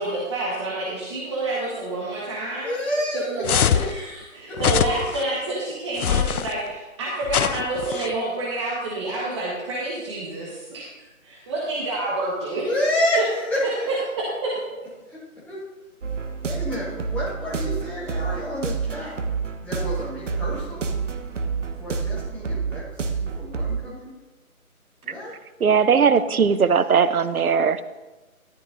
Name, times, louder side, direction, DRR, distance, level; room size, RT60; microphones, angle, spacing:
voice 1, 0.0-2.7 3.1-10.9 11.2-12.6 13.9-14.5, right 2 dB, 20° right, -5 dB, 1.3 m, -28 dB
voice 2, 2.6-3.7 4.5-4.6 12.6-13.9 15.1-15.2 15.5-15.6 16.4-19.2 19.6-20.9 21.8-22.9 23.2-24.1 25.0-25.3, left 1 dB, 5° left, -10 dB, 1.7 m, -29 dB
sound 1, 3.4-3.9 4.6-5.2 6.0-6.5 7.3-8.1, left 9 dB, 80° left, 0.6 m, -23 dB
sound 2, 16.0-23.8, right 5 dB, 55° right, 1.1 m, -29 dB
voice 3, 25.6-27.8, right 6 dB, 80° right, 13 dB, 0.8 m, -19 dB
13.5 x 12.0 x 2.6 m, 1.1 s
figure-of-eight pair, 155°, 43 cm